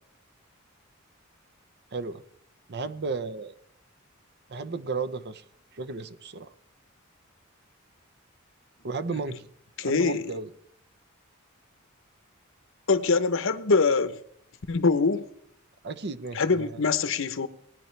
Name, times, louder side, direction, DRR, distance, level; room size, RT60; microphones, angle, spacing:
voice 1, 1.9-2.2 2.7-3.5 4.5-5.4 5.7-6.5 8.8-9.5 9.8-10.5 15.8-16.8, right 4 dB, 55° right, 0.8 m, -34 dB
voice 2, 9.8-10.2 12.9-14.2 14.7-15.3 16.3-17.5, left 4 dB, 65° left, 0.9 m, -24 dB
19.5 x 10.5 x 3.3 m
head